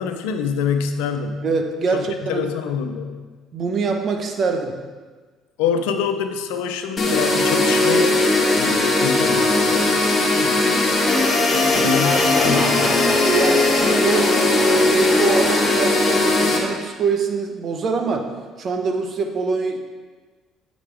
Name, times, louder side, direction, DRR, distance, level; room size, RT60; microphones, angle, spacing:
voice 1, 0.0-1.5 1.9-3.2 5.6-8.2 8.6-10.1 11.8-13.1, left 7 dB, 90° left, 7 dB, 0.5 m, -26 dB
voice 2, 1.4-2.5 3.5-4.8 10.3-10.8 11.5-11.9 12.5-12.6 12.8-13.0 13.2-13.7 14.0-18.3 18.6-19.8, right 4 dB, 50° right, 4 dB, 0.9 m, -24 dB
sound 1, 7.0-16.6, left 2 dB, 40° left, 1.3 m, -18 dB
sound 2, 9.4-10.6 11.0-11.1 12.0-16.3, equal, 25° right, 1.8 m, -32 dB
7.6 x 5.2 x 3.4 m, 1.4 s
supercardioid pair, 80°, 0 cm